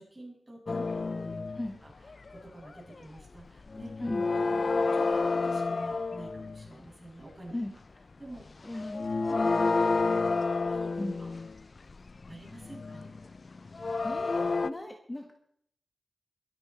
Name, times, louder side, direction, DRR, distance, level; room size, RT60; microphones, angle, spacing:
voice 1, 0.0-1.5 1.8-1.9 2.3-3.9 4.3-7.6 8.2-8.4 9.3-10.2 10.7-10.9 11.2-11.3 12.3-13.1, right 1 dB, 20° right, -3 dB, 7.1 m, -48 dB
sound 1, 0.7-1.8 2.1-2.4 2.6-3.4 3.7-6.7 8.4-8.5 8.7-14.7, left 3 dB, 45° left, 0.5 m, -30 dB
voice 2, 8.6-9.1 11.0-11.2 14.0-15.3, left 1 dB, 20° left, 4 dB, 1.4 m, -36 dB
22.5 x 9.2 x 4.4 m, 0.69 s
wide cardioid pair, 85°, 0 cm